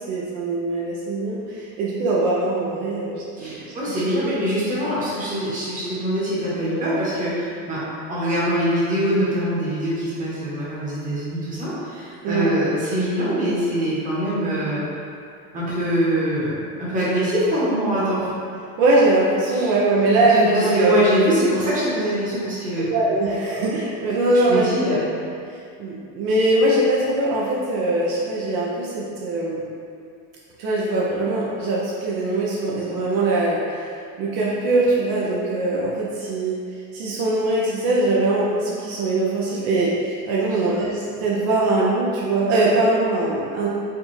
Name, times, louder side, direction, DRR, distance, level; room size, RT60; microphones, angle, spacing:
voice 1, 0.1-4.0 4.3-4.4 12.2-12.5 18.8-21.0 22.9-25.0 25.5-29.6 30.6-33.8 34.2-36.6 36.9-43.7, right 2 dB, 65° right, -5 dB, 0.7 m, -21 dB
voice 2, 3.4-7.8 8.1-14.8 15.5-16.5 16.8-18.3 19.5-19.7 20.3-22.9 24.5-25.0, equal, 20° right, -9 dB, 1.0 m, -23 dB
4.5 x 2.4 x 3.1 m, 2.4 s
cardioid pair, 165°, 39 cm